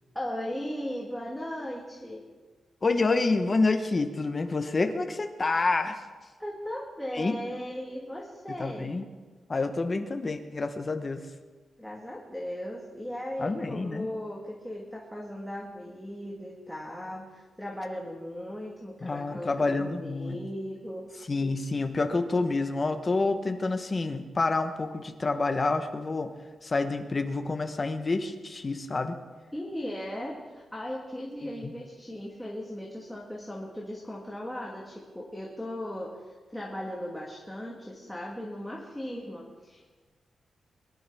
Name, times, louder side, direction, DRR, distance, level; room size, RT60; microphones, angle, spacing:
voice 1, 0.0-2.2 6.4-8.9 11.8-21.1 29.5-39.9, equal, ahead, -3 dB, 1.7 m, -37 dB
voice 2, 2.8-6.0 7.1-7.4 8.6-9.1 9.5-11.2 13.4-14.1 19.0-20.4 21.3-26.3 26.6-29.1 31.6-31.7, left 3 dB, 25° left, 6 dB, 1.0 m, -28 dB
23.0 x 11.5 x 3.5 m, 1.4 s
wide cardioid pair, 160°, 0 cm